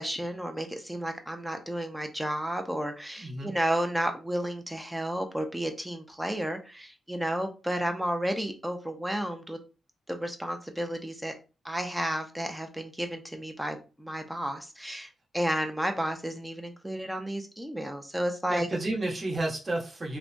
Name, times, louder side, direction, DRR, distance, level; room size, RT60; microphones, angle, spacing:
voice 1, 0.0-9.6 10.1-11.3 11.6-18.7, right 1 dB, 5° right, 0.6 m, -32 dB
voice 2, 3.2-3.6 18.5-20.2, right 2 dB, 35° right, 1.1 m, -31 dB
3.1 x 2.2 x 2.5 m
cardioid pair, 80°, 0 cm